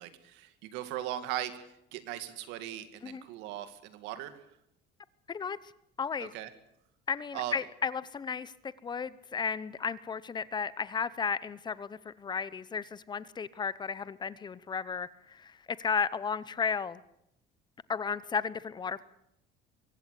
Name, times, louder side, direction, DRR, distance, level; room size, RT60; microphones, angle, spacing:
voice 1, 0.0-1.6 1.9-4.4 6.2-6.5 7.3-7.5, right 13 dB, 90° right, 10 dB, 2.3 m, -38 dB
voice 2, 5.3-5.7 6.0-6.3 7.1-17.0 17.9-19.0, left 6 dB, 25° left, 17 dB, 0.8 m, -34 dB
23.5 x 16.0 x 8.4 m, 0.79 s
cardioid pair, 145°, 18 cm